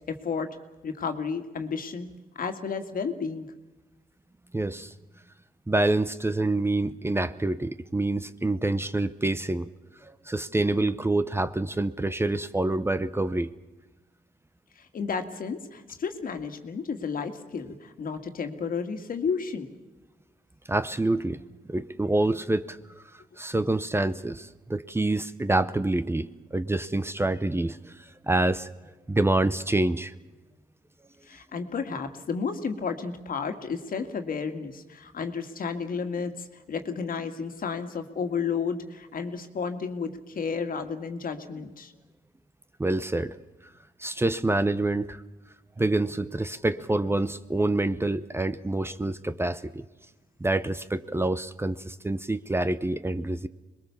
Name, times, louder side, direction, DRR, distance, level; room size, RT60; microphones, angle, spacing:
voice 1, 0.1-0.6 0.8-2.1 2.4-3.5 14.8-19.7 31.3-41.9, left 5 dB, 65° left, 7 dB, 2.0 m, -32 dB
voice 2, 4.5-4.9 5.7-9.7 10.0-13.5 20.7-21.4 21.7-22.8 23.1-28.7 29.1-30.1 42.8-43.4 44.0-45.2 45.8-49.8 50.4-53.5, right 2 dB, 15° right, 13 dB, 0.8 m, -27 dB
26.0 x 21.0 x 7.1 m, 1.1 s
cardioid pair, 80°, 16 cm